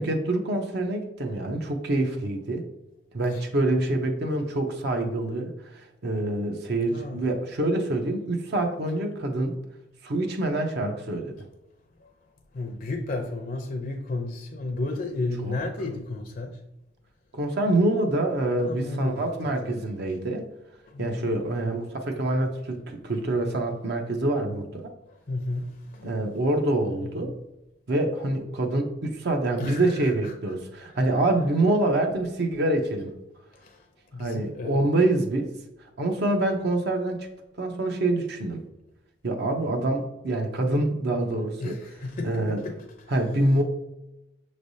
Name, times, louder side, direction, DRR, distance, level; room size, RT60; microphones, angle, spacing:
voice 1, 0.0-2.6 3.1-9.5 10.0-11.4 15.4-15.6 17.3-20.5 21.0-24.9 26.0-27.3 27.9-33.1 34.2-35.5 36.0-37.3 37.6-38.6 39.2-41.8 42.2-42.6 43.1-43.6, right 2 dB, 60° right, 4 dB, 0.6 m, -26 dB
voice 2, 6.9-7.3 12.0-12.1 12.5-16.6 18.7-19.9 20.9-21.7 25.1-26.1 27.0-27.3 29.6-30.3 30.8-31.0 33.5-33.9 34.1-34.9 41.2-42.7, left 2 dB, 50° left, 5 dB, 0.5 m, -33 dB
6.1 x 3.2 x 2.6 m, 0.93 s
head